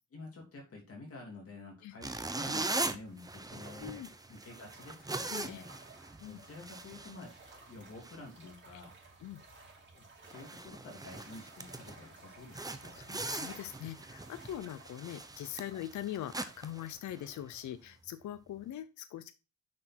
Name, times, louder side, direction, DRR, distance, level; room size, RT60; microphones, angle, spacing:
voice 1, 0.1-4.0 4.3-5.7 6.2-7.3 7.7-9.0 9.9-13.1, left 3 dB, 45° left, 0 dB, 2.8 m, -50 dB
sound 1, 2.0-7.7 8.0-8.2 8.7-8.9 9.3-9.4 9.9-10.0 10.2-12.0 12.5-17.6, right 2 dB, 10° right, 0.7 m, -41 dB
sound 2, 3.0-16.9, right 3 dB, 35° right, 3.6 m, -57 dB
voice 2, 5.3-5.6 6.2-6.4 8.7-8.8 9.2-9.4 12.9-19.3, left 11 dB, 70° left, 11 dB, 0.7 m, -42 dB
6.2 x 6.0 x 4.4 m, 0.29 s
cardioid pair, 105°, 31 cm